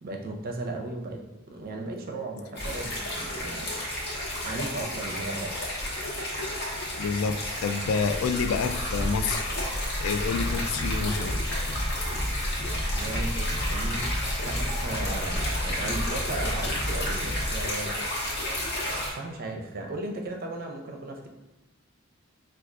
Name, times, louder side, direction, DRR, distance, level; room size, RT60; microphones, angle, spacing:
voice 1, 0.0-1.2 1.5-3.7 4.4-5.5 12.7-17.9 19.1-21.3, right 2 dB, 45° right, 2 dB, 0.5 m, -36 dB
sound 1, 2.5-19.1, left 1 dB, 55° left, 0.9 m, -31 dB
voice 2, 7.0-9.6 10.0-11.4, left 5 dB, 75° left, 9 dB, 0.3 m, -28 dB
sound 2, 10.3-17.7, equal, 20° left, 0.7 m, -32 dB
4.6 x 2.3 x 2.4 m, 1.1 s
head